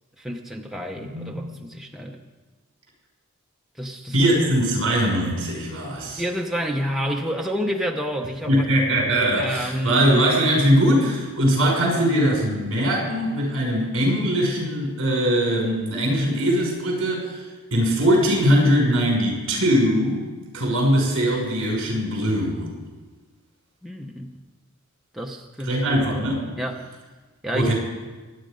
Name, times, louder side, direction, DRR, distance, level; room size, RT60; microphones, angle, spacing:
voice 1, 0.2-2.2 3.8-4.3 6.2-8.7 9.3-10.3 23.8-24.4 25.1-25.7 26.6-26.8 27.4-27.7, equal, ahead, 0 dB, 0.8 m, -29 dB
voice 2, 1.0-1.4 4.1-6.2 8.5-17.4 17.7-20.2 20.5-22.7 25.6-26.5 27.5-27.7, equal, 55° right, -1 dB, 5.7 m, -21 dB
24.0 x 9.0 x 5.1 m, 1.3 s
head